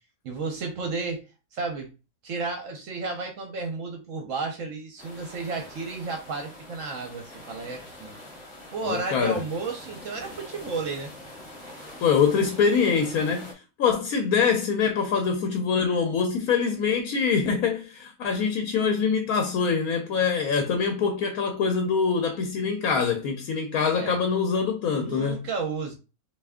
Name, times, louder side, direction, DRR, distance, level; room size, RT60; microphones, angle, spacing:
voice 1, 0.2-1.2 1.5-1.9 2.2-8.2 8.7-11.1 11.8-11.9 23.9-24.2 25.0-25.9, right 4 dB, 65° right, 1.0 m, -32 dB
sound 1, 5.0-13.5, left 1 dB, 25° left, 1.9 m, -44 dB
voice 2, 8.9-9.4 12.0-25.4, left 6 dB, 80° left, 1.1 m, -24 dB
3.3 x 2.7 x 3.5 m
omnidirectional pair, 1.5 m